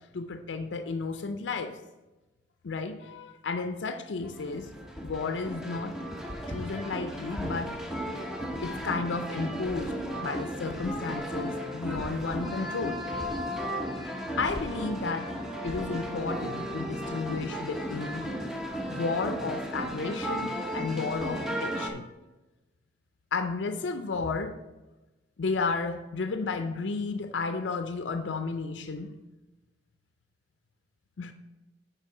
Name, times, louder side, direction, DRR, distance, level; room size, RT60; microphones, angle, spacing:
voice 1, 0.1-1.8 2.6-4.7 5.0-6.0 6.5-7.8 8.6-13.0 13.6-15.3 15.6-18.3 18.9-22.1 23.3-24.6 25.4-29.1 31.2-31.3, left 4 dB, 85° left, 8 dB, 0.5 m, -33 dB
sound 1, 4.2-21.9, equal, 5° right, 0.8 m, -35 dB
9.0 x 3.4 x 5.9 m, 1.1 s
head